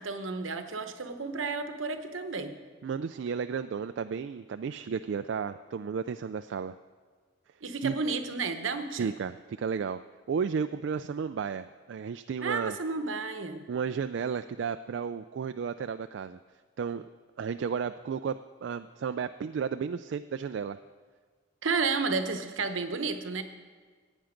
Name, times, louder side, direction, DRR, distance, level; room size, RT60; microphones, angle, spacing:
voice 1, 0.0-2.6 7.6-9.1 12.4-13.7 21.6-23.4, right 4 dB, 80° right, 8 dB, 1.0 m, -32 dB
voice 2, 2.8-6.8 7.8-7.9 9.0-10.0 10.3-12.8 13.7-16.4 16.8-17.1 17.4-20.8, right 6 dB, 65° right, 9 dB, 0.3 m, -33 dB
15.5 x 9.1 x 5.1 m, 1.5 s
head